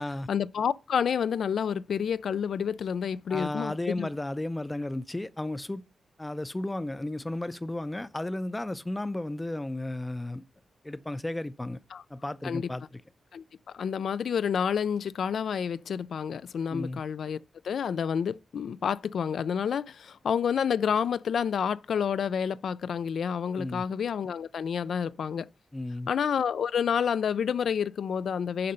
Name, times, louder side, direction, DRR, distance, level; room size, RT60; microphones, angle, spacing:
voice 1, 0.3-4.1 11.9-12.0 12.4-12.7 13.3-13.4 13.7-25.5 26.1-28.7, left 7 dB, 80° left, 0.3 m, -29 dB
voice 2, 3.3-5.8 6.2-10.4 10.8-11.8 12.1-13.0 16.7-17.0 23.6-23.9 25.7-26.1, left 1 dB, 15° left, 0.4 m, -34 dB
6.5 x 5.3 x 5.5 m
wide cardioid pair, 120°, 0 cm